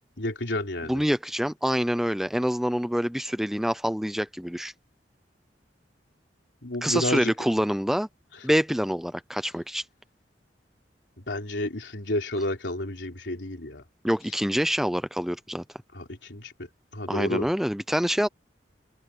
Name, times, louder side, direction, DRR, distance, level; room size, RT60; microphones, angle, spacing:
voice 1, 0.2-1.0 6.6-7.3 11.2-13.8 15.9-16.7 16.9-17.5, left 1 dB, 85° left, 3.4 m, -31 dB
voice 2, 0.9-4.7 6.8-8.1 8.4-9.8 14.0-15.6 17.1-18.3, equal, ahead, 0.6 m, -26 dB
open air
head